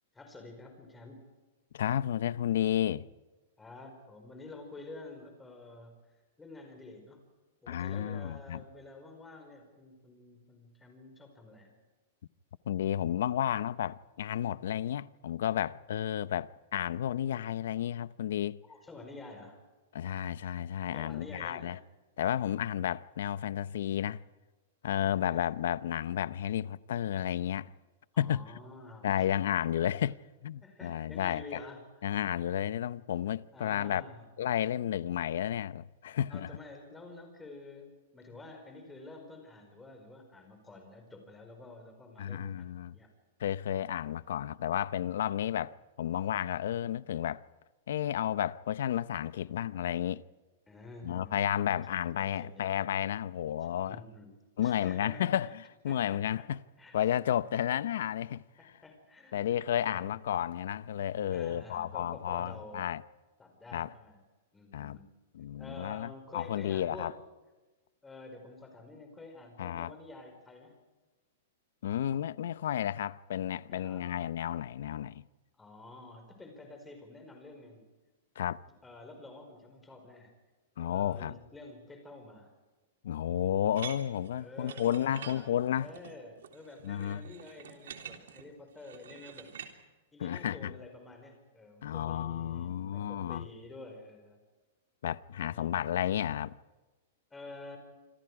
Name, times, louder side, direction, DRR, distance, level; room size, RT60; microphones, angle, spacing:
voice 1, 0.1-1.2 3.6-6.0 6.4-7.2 7.6-11.7 18.6-19.6 20.9-21.8 28.1-29.3 30.6-32.1 33.5-34.3 36.3-43.1 50.7-51.8 52.1-52.8 53.9-54.4 54.6-55.3 55.8-56.5 56.8-57.0 58.6-60.2 61.3-62.9 63.4-64.2 64.5-65.1 65.5-67.2 68.0-70.8 73.7-74.1 75.6-77.8 78.6-80.3 80.8-82.5 84.4-85.5 85.8-89.5 90.1-94.4 95.4-95.8 97.3-97.8, left 2 dB, 10° left, 4.9 m, -49 dB
voice 2, 1.7-3.1 7.7-8.6 12.7-18.6 19.9-21.8 22.2-24.2 24.8-27.7 28.2-28.4 29.0-30.2 30.4-31.6 32.0-34.0 34.4-36.5 42.2-42.9 43.4-47.4 47.9-50.2 51.0-54.0 54.6-56.6 56.9-58.7 59.3-63.0 63.7-63.9 64.7-65.0 65.3-67.1 69.6-69.9 71.8-75.2 78.4-78.6 80.8-81.4 83.0-85.9 86.8-87.2 90.2-90.7 91.8-93.5 95.0-96.5, left 10 dB, 70° left, 0.7 m, -32 dB
sound 1, 83.7-89.7, right 8 dB, 90° right, 3.5 m, -47 dB
27.0 x 26.5 x 4.9 m
supercardioid pair, 165°, 0 cm